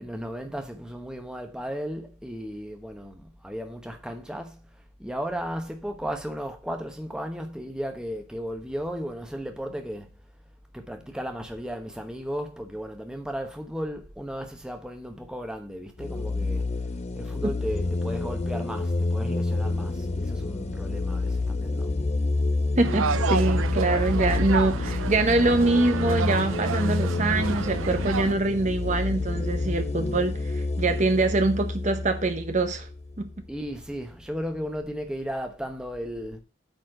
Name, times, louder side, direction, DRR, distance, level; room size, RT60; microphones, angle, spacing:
voice 1, 0.0-10.2 10.7-16.7 17.1-22.0 33.5-36.4, equal, 5° right, 1.0 m, -35 dB
sound 1, 16.0-33.4, left 3 dB, 35° left, 0.5 m, -28 dB
voice 2, 22.8-32.9 33.2-33.3, right 2 dB, 35° right, 0.9 m, -24 dB
sound 2, 22.8-28.3, right 5 dB, 90° right, 0.6 m, -30 dB
9.0 x 4.2 x 6.4 m
head